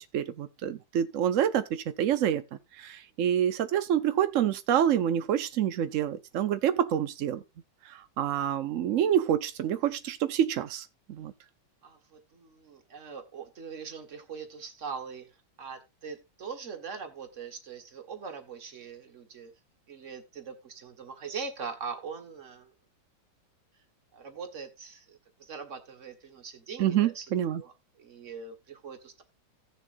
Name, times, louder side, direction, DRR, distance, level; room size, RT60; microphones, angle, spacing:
voice 1, 0.1-2.4 2.8-7.4 7.9-11.3 26.8-27.6, right 10 dB, 80° right, 0.7 m, -27 dB
voice 2, 11.8-19.5 19.9-22.7 24.1-27.3 27.5-29.2, right 5 dB, 40° right, 1.7 m, -42 dB
17.0 x 6.8 x 2.5 m
omnidirectional pair, 2.2 m